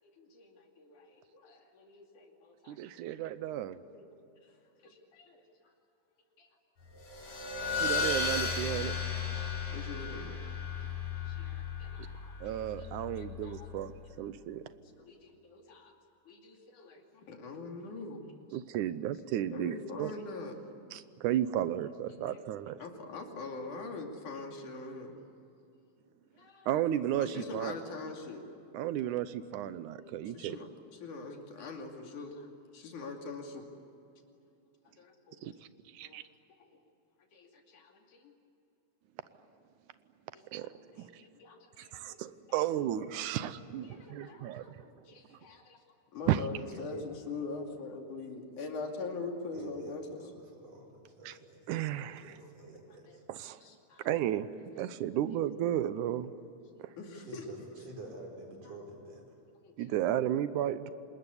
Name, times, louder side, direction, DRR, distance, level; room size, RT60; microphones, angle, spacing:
voice 1, 0.0-2.8 3.9-4.1 4.4-4.5 4.8-5.4 6.4-6.5 7.3-7.9 9.2-10.3 11.3-13.9 14.3-15.9 16.3-18.2 19.5-20.6 22.8-25.2 26.3-26.7 27.2-28.4 30.0-30.7 31.0-32.5 32.7-33.6 35.0-35.5 36.0-36.2 36.6-36.7 37.3-38.3 40.3-42.2 43.7-45.8 46.1-50.2 52.3-52.5 53.1-54.1 56.8-57.7 59.6-60.0, left 3 dB, 90° left, 2 dB, 4.1 m, -44 dB
voice 2, 2.7-3.8 7.8-8.9 12.4-13.9 14.2-14.8 18.5-20.1 20.9-22.8 26.7-27.7 28.7-30.6 35.4-35.5 35.9-36.2 40.5-41.2 41.8-44.8 46.3-46.5 51.3-51.4 51.7-52.4 53.3-53.6 54.0-54.5 54.8-56.3 56.8-56.9 59.8-60.9, right 11 dB, 85° right, 14 dB, 2.3 m, -33 dB
sound 1, 7.0-14.0, left 5 dB, 70° left, 5.1 m, -35 dB
voice 3, 49.5-51.6 51.9-53.2 57.1-57.6 57.8-59.4, right 2 dB, 55° right, 1 dB, 5.9 m, -49 dB
26.5 x 21.0 x 9.7 m, 2.7 s
omnidirectional pair, 3.5 m